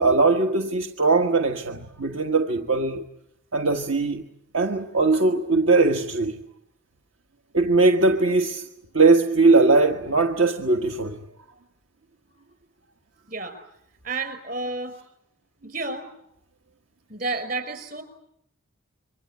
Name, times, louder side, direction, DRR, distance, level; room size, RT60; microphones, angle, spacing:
voice 1, 0.0-3.0 3.5-4.2 4.5-6.4 7.5-8.7 8.9-11.2, right 3 dB, 70° right, 1.5 m, -20 dB
voice 2, 14.0-15.0 15.6-16.1 17.1-18.0, right 3 dB, 45° right, 5.3 m, -30 dB
28.0 x 24.0 x 8.5 m
head